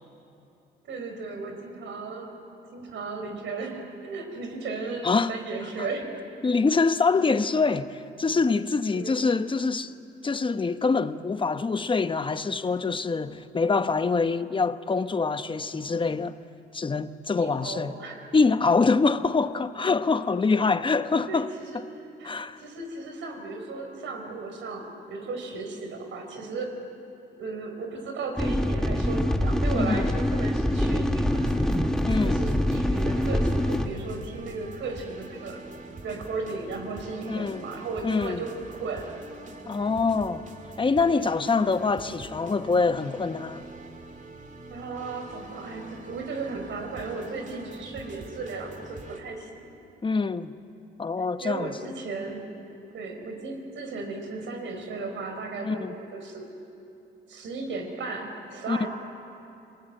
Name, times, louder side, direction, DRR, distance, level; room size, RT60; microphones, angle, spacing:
voice 1, 0.9-6.1 8.9-9.2 17.3-18.3 21.3-21.4 21.7-21.8 22.2-26.7 27.4-31.5 32.2-35.6 36.0-39.1 44.7-49.8 51.4-52.5 52.9-56.5 57.3-58.9, right 3 dB, 70° right, 4.7 m, -35 dB
voice 2, 6.4-9.9 10.2-16.4 16.7-17.9 18.3-21.5 22.2-22.6 29.7-30.1 32.0-32.4 37.3-37.6 38.0-38.4 39.7-40.4 40.8-43.7 50.0-50.5 51.0-51.7 55.6-55.9 58.7-58.9, left 4 dB, 25° left, 1.0 m, -25 dB
sound 1, 28.4-33.9, left 1 dB, 5° left, 1.5 m, -25 dB
sound 2, 31.3-49.2, right 2 dB, 40° right, 2.7 m, -44 dB
29.0 x 21.0 x 9.0 m
cardioid pair, 90°, 20 cm